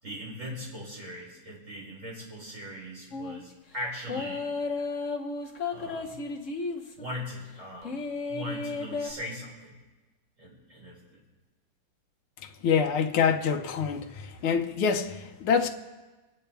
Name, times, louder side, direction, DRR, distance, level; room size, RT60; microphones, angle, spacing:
voice 1, 0.0-4.5 5.7-6.2 7.0-8.0 8.3-9.8 10.4-11.2 14.0-14.4, left 1 dB, 35° right, 4.7 m, -40 dB
sound 1, 3.1-3.4 4.1-7.1 7.8-9.1, left 4 dB, 45° left, 1.2 m, -33 dB
voice 2, 12.6-15.7, left 6 dB, 85° left, 1.6 m, -26 dB
27.0 x 9.5 x 3.4 m
omnidirectional pair, 2.3 m